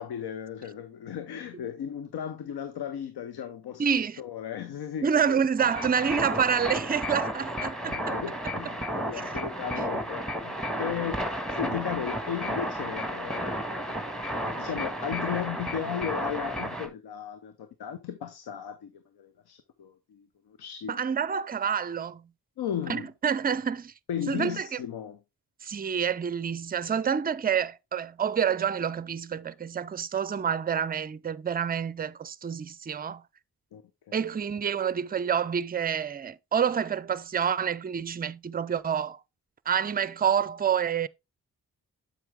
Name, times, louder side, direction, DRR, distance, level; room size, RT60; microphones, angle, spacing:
voice 1, 0.0-5.4 5.7-5.9 7.8-11.3 11.5-13.6 14.3-21.0 22.6-23.1 24.1-25.2 33.7-33.8 34.1-34.3, left 9 dB, 85° left, 0.8 m, -36 dB
voice 2, 3.8-4.2 5.0-8.2 9.1-9.4 9.7-9.9 20.9-22.3 22.9-23.9 24.3-24.8 25.6-33.2 34.1-39.2 39.7-41.1, right 7 dB, 25° right, 0.5 m, -28 dB
sound 1, 5.6-16.9, equal, ahead, 1.8 m, -32 dB
7.8 x 5.4 x 3.5 m
cardioid pair, 45°, 37 cm